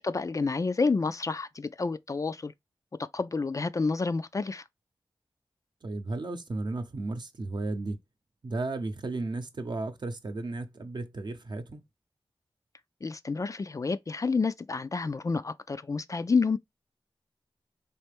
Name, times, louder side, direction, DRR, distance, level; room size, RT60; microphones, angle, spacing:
voice 1, 0.0-2.5 3.1-4.6 13.0-16.6, left 4 dB, 35° left, 0.3 m, -29 dB
voice 2, 5.8-8.0 8.4-11.8, right 2 dB, 55° right, 0.8 m, -34 dB
4.2 x 3.3 x 3.4 m
wide cardioid pair, 100°, 9 cm